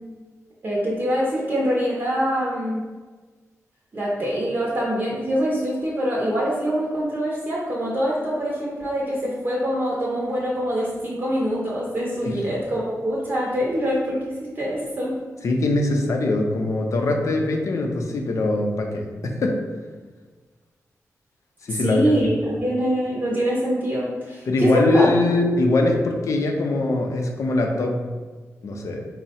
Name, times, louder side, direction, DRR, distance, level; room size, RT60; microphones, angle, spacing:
voice 1, 0.6-2.8 3.9-15.2 21.8-25.1, equal, 35° right, -5 dB, 0.6 m, -24 dB
voice 2, 15.4-19.6 21.6-22.1 24.5-28.0 28.6-29.0, left 2 dB, 65° left, 2 dB, 0.5 m, -22 dB
3.6 x 2.0 x 4.1 m, 1.4 s
wide cardioid pair, 150°, 6 cm